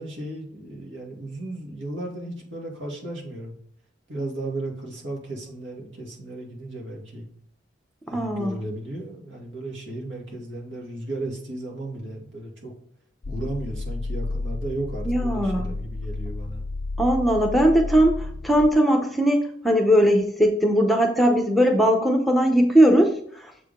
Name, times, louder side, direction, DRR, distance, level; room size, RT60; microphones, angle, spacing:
voice 1, 0.0-3.5 4.1-7.3 8.1-12.7 13.3-16.6, right 2 dB, 80° right, -1 dB, 2.2 m, -35 dB
voice 2, 8.1-8.6 15.1-15.7 17.0-23.2, equal, ahead, 3 dB, 0.7 m, -19 dB
sound 1, 13.2-18.7, left 2 dB, 50° left, 0.5 m, -31 dB
7.3 x 4.8 x 3.7 m, 0.63 s
head